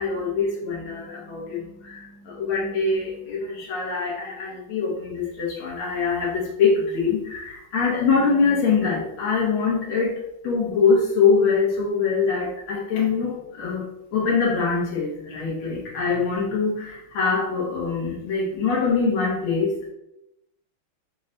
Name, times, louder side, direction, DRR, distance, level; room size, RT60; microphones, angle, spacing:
voice 1, 0.0-10.1 10.4-13.8 14.1-19.9, left 5 dB, 90° left, -4 dB, 1.7 m, -23 dB
5.7 x 2.1 x 3.8 m, 0.86 s
omnidirectional pair, 2.3 m